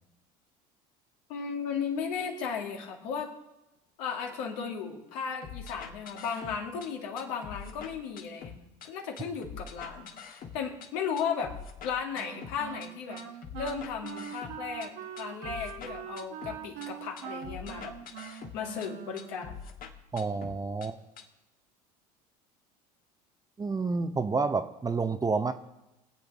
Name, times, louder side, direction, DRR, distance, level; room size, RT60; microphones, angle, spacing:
voice 1, 1.3-3.3 4.0-10.1 10.5-11.5 11.8-13.2 13.5-14.9 15.2-17.9 18.2-19.6, left 6 dB, 75° left, 2 dB, 2.0 m, -35 dB
sound 1, 5.4-6.9 7.2-8.9 9.2-10.9 11.2-12.9 13.2-14.9 15.2-16.9 17.2-18.9 19.2-20.9 21.2-21.3, left 6 dB, 45° left, 1.4 m, -44 dB
Wind instrument woodwind instrument, 12.1-19.6, right 8 dB, 65° right, 1.1 m, -43 dB
voice 2, 20.1-21.0 23.6-25.5, right 4 dB, 20° right, 10 dB, 0.7 m, -29 dB
23.5 x 7.9 x 3.5 m, 0.95 s
hypercardioid pair, 85°, 20 cm